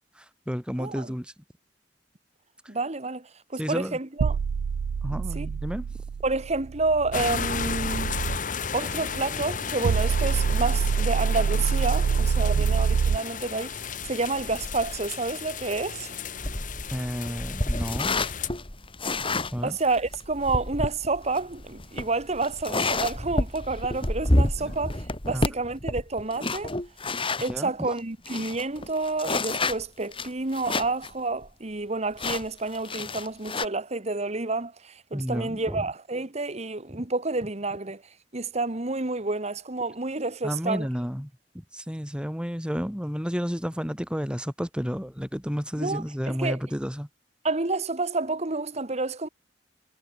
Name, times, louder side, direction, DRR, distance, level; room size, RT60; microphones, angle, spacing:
voice 1, 0.2-1.3 3.6-4.0 5.0-5.9 12.6-12.7 16.9-18.2 19.5-19.8 25.3-25.5 27.5-27.9 35.1-35.9 40.4-47.1, equal, 5° right, 5.6 m, -31 dB
voice 2, 0.8-1.1 2.7-4.4 5.3-5.5 6.2-8.1 8.7-16.1 19.6-26.8 27.4-38.0 38.3-40.9 45.8-46.6 47.4-49.3, right 3 dB, 40° right, 1.5 m, -29 dB
sound 1, 4.2-8.4 9.8-13.2, right 6 dB, 80° right, 0.3 m, -26 dB
sound 2, 7.1-18.5, left 6 dB, 45° left, 1.2 m, -34 dB
sound 3, 16.4-27.6 28.0-28.1 28.2-31.1 31.4-31.5 32.2-33.6, left 2 dB, 30° left, 4.2 m, -29 dB
head